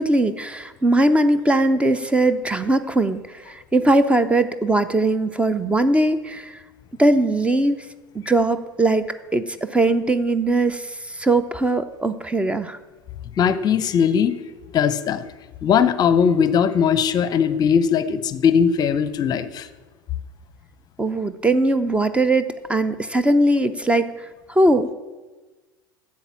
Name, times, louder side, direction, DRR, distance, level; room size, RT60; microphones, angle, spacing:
voice 1, 0.0-6.6 7.0-7.8 8.1-12.8 21.0-24.9, right 2 dB, 10° right, 12 dB, 0.6 m, -20 dB
voice 2, 13.4-14.3 14.7-15.2 15.6-19.7, left 7 dB, 35° left, 14 dB, 0.7 m, -19 dB
13.0 x 7.6 x 7.4 m, 1.3 s
figure-of-eight pair, 75°, 11 cm